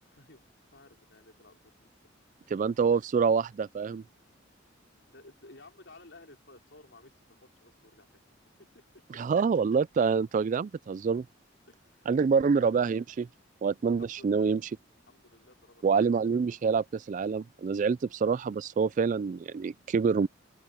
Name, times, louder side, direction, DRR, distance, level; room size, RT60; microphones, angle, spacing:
voice 1, 0.0-2.1 2.4-2.5 5.1-8.1 8.6-9.2 11.7-12.9 14.0-14.5 15.1-16.1, left 2 dB, 65° left, 4.8 m, -56 dB
voice 2, 2.5-4.0 9.2-11.3 12.1-13.3 13.6-14.6 15.8-20.3, right 5 dB, 40° right, 0.3 m, -26 dB
open air
head